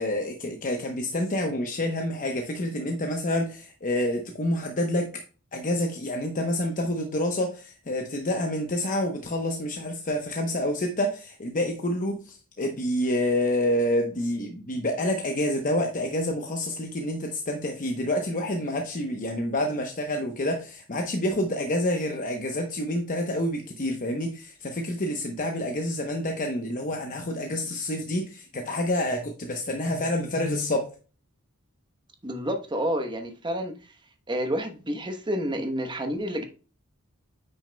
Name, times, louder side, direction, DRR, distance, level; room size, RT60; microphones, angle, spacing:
voice 1, 0.0-5.2 5.5-30.9, left 1 dB, 40° left, 0.9 m, -28 dB
voice 2, 32.2-33.7 34.3-36.4, equal, 20° right, 1.0 m, -29 dB
9.0 x 6.2 x 2.2 m
head